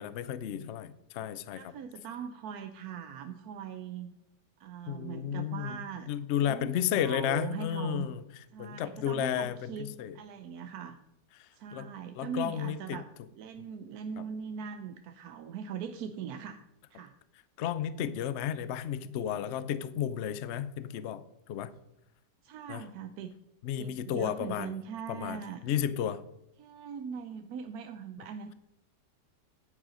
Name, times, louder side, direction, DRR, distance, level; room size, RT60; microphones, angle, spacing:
voice 1, 0.0-1.7 4.9-10.2 11.4-11.9 12.1-13.0 14.2-14.3 17.6-21.7 22.7-22.8 23.6-24.7 25.1-26.2, left 9 dB, 65° left, 14 dB, 0.7 m, -33 dB
voice 2, 1.5-4.1 4.6-6.1 6.4-8.1 8.5-11.0 11.5-13.1 13.4-16.6 16.9-17.1 22.4-23.3 23.8-25.6 26.6-28.5, right 7 dB, 70° right, 8 dB, 1.1 m, -41 dB
9.7 x 9.7 x 5.1 m, 0.83 s
omnidirectional pair, 1.8 m